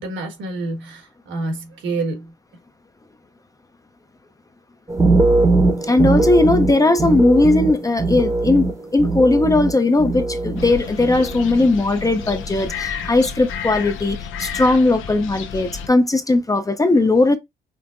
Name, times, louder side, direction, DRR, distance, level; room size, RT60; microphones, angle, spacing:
voice 1, 0.0-2.3, right 3 dB, 75° right, 1.5 m, -28 dB
sound 1, 4.9-10.7 11.0-11.7 12.0-12.4, right 3 dB, 15° right, 0.8 m, -20 dB
voice 2, 5.9-17.4, left 2 dB, 15° left, 0.5 m, -18 dB
sound 2, 10.6-15.9, left 7 dB, 85° left, 0.6 m, -31 dB
5.2 x 2.0 x 2.5 m
cardioid pair, 90°, 20 cm